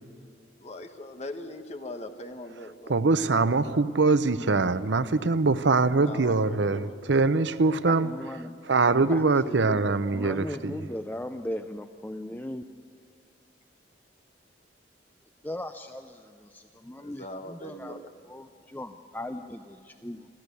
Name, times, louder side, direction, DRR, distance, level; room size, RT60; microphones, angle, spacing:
voice 1, 0.6-3.0 3.4-3.5 6.0-7.5 17.0-18.1, left 1 dB, 40° left, 1.3 m, -41 dB
voice 2, 2.9-8.1 8.7-10.8, right 3 dB, 85° right, 0.7 m, -23 dB
voice 3, 7.9-8.6 9.0-12.6 15.4-18.0 18.3-20.3, left 1 dB, 10° left, 0.5 m, -38 dB
27.5 x 14.0 x 8.4 m
head